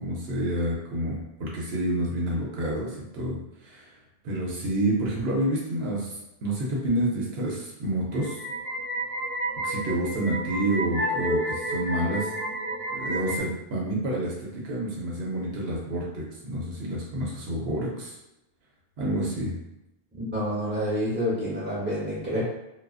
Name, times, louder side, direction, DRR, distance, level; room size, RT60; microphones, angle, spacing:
voice 1, 0.0-3.9 4.2-8.4 9.6-12.3 12.9-18.2 19.0-19.6, right 1 dB, 75° right, -3 dB, 0.8 m, -29 dB
sound 1, 8.1-13.4, right 1 dB, 30° right, 0.4 m, -31 dB
voice 2, 20.1-22.4, equal, 10° right, -8 dB, 0.9 m, -28 dB
2.4 x 2.2 x 2.3 m, 0.91 s
omnidirectional pair, 1.0 m